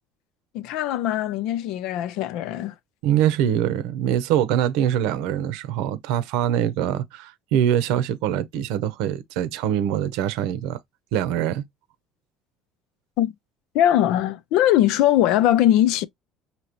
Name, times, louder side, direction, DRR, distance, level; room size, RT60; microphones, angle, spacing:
voice 1, 0.5-2.7 13.2-13.3 13.7-16.1, left 12 dB, 75° left, 0.5 m, -20 dB
voice 2, 3.0-10.8 11.1-11.6, right 10 dB, 80° right, 0.7 m, -23 dB
5.2 x 2.8 x 2.9 m
cardioid pair, 115°, 0 cm